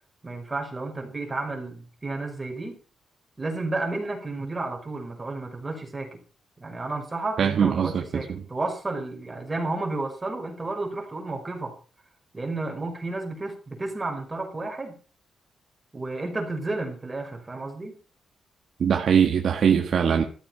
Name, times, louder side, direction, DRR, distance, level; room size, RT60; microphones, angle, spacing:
voice 1, 0.2-2.8 3.4-6.2 6.6-11.8 12.3-14.9 15.9-18.0, right 2 dB, 20° right, 5.4 m, -32 dB
voice 2, 7.4-8.2 18.8-20.2, right 7 dB, 55° right, 1.6 m, -21 dB
14.0 x 13.0 x 4.7 m
wide cardioid pair, 145°, 0 cm